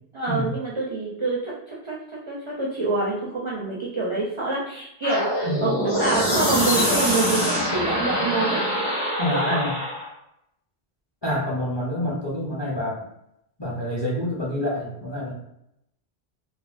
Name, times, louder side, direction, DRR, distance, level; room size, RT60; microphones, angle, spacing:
voice 1, 0.1-8.6 9.3-9.6, right 3 dB, 45° right, -5 dB, 0.4 m, -26 dB
sound 1, 5.0-10.1, equal, 50° left, 1.8 m, -24 dB
voice 2, 5.4-5.8 9.2-9.7 11.2-13.0 13.6-15.3, left 1 dB, 30° left, -5 dB, 0.6 m, -27 dB
3.3 x 2.0 x 2.4 m, 0.80 s
omnidirectional pair, 1.0 m